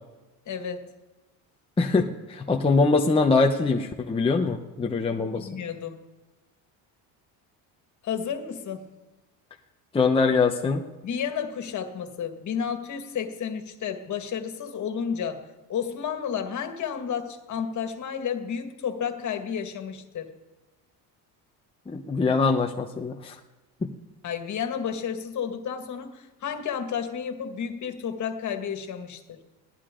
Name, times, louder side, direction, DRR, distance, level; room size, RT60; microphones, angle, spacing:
voice 1, 0.5-0.9 5.1-6.0 8.0-8.9 11.0-15.4 15.7-20.3 24.2-29.4, left 7 dB, 45° left, 6 dB, 2.0 m, -31 dB
voice 2, 1.8-5.5 9.9-10.8 21.9-23.3 23.8-23.9, left 4 dB, 15° left, 2 dB, 0.9 m, -23 dB
21.5 x 16.5 x 3.8 m, 1.2 s
cardioid pair, 135°, 41 cm